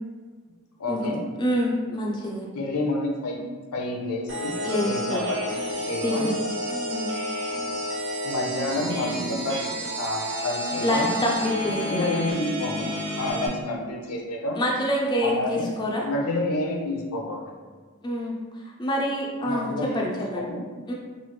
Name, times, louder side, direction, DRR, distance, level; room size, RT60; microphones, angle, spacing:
voice 1, 0.8-1.3 2.5-3.4 3.7-6.3 8.2-11.2 11.8-12.9 13.2-14.6 15.2-15.7 16.0-17.4 19.4-20.7, left 2 dB, 75° left, 0 dB, 0.5 m, -29 dB
voice 2, 1.4-2.5 4.6-5.2 6.0-6.3 6.7-7.1 10.8-12.1 14.5-16.1 18.0-18.4 18.8-20.5 20.9-21.0, equal, 20° left, -2 dB, 0.3 m, -26 dB
sound 1, 4.3-13.5, equal, 60° right, 0.7 m, -30 dB
3.0 x 2.1 x 3.2 m, 1.4 s
head